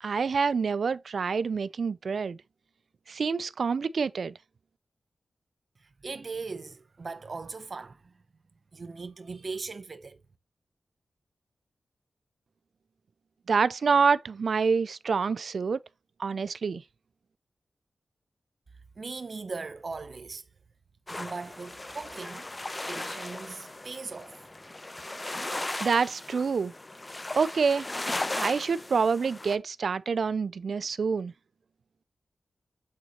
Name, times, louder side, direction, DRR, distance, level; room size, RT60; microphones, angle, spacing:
voice 1, 0.0-2.4 3.1-4.3 13.5-15.8 16.2-16.8 25.8-26.7 27.4-27.9 28.3-31.3, right 5 dB, 70° right, 0.3 m, -27 dB
voice 2, 6.0-8.1 8.7-10.2 19.0-20.4 21.1-22.5 22.9-24.4, right 4 dB, 55° right, 0.7 m, -39 dB
sound 1, 21.1-29.6, left 2 dB, 25° left, 0.7 m, -37 dB
8.7 x 4.0 x 2.9 m
cardioid pair, 65°, 0 cm